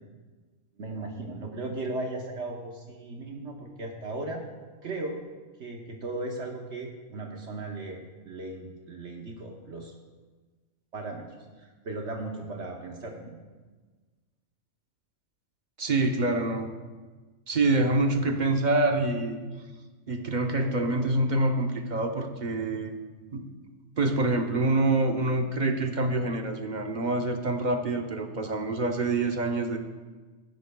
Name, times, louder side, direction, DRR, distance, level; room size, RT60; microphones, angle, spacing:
voice 1, 0.7-4.5 4.8-5.2 5.6-9.9 10.9-11.3 11.6-13.4, right 2 dB, 60° right, 1 dB, 1.2 m, -36 dB
voice 2, 15.8-16.7 17.5-19.4 20.1-23.0 23.3-23.5 24.0-29.8, right 2 dB, 40° right, 4 dB, 0.9 m, -26 dB
16.5 x 10.5 x 2.3 m, 1.4 s
omnidirectional pair, 1.3 m